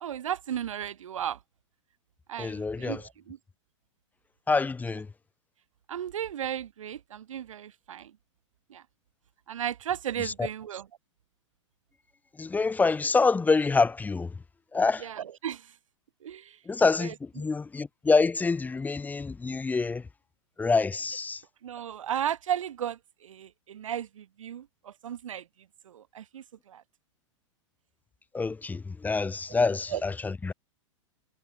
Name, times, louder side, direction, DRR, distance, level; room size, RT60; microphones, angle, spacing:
voice 1, 0.0-1.4 2.3-3.4 5.9-8.1 8.7-8.8 9.5-10.8 15.0-15.7 16.2-16.6 17.0-17.4 21.6-25.4 25.8-26.8 29.9-30.0, right 10 dB, 80° right, 1.4 m, -35 dB
voice 2, 2.4-3.0 4.5-5.1 10.2-10.5 12.4-14.3 14.7-15.1 16.6-20.1 20.6-21.4 28.3-30.5, left 4 dB, 10° left, 1.4 m, -26 dB
hypercardioid pair, 125°, 16 cm